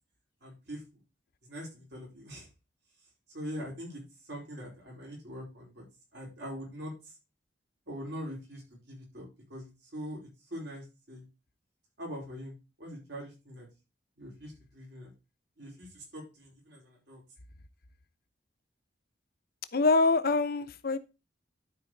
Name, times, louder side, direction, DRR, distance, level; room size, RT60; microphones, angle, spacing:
voice 1, 0.4-0.8 1.5-2.5 3.3-5.8 6.1-7.1 7.9-9.2 9.5-11.2 12.0-13.7 14.2-15.1 15.6-17.2, equal, 65° right, 4.7 m, -43 dB
voice 2, 19.7-21.0, left 3 dB, 55° left, 0.8 m, -25 dB
12.0 x 4.9 x 3.9 m
head